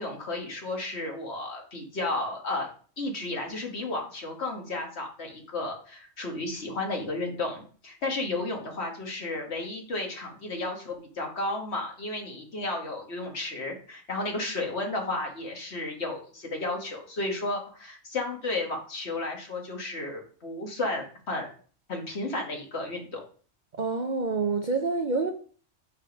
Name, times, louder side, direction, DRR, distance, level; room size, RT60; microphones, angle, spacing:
voice 1, 0.0-2.7 3.0-21.5 21.9-23.2, left 2 dB, 55° left, 1.8 m, -33 dB
voice 2, 23.8-25.3, right 4 dB, 45° right, 0.6 m, -27 dB
5.7 x 5.0 x 5.2 m
omnidirectional pair, 1.3 m